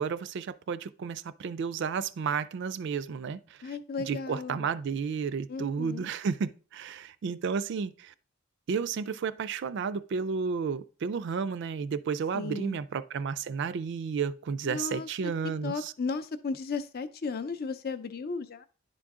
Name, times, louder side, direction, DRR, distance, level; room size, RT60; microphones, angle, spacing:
voice 1, 0.0-3.4 3.6-3.8 4.0-8.1 8.7-15.9, right 6 dB, 55° right, 0.3 m, -32 dB
voice 2, 3.6-4.7 5.5-6.1 12.3-12.8 14.6-15.3 15.6-18.7, left 4 dB, 45° left, 0.5 m, -35 dB
10.0 x 3.8 x 3.6 m
head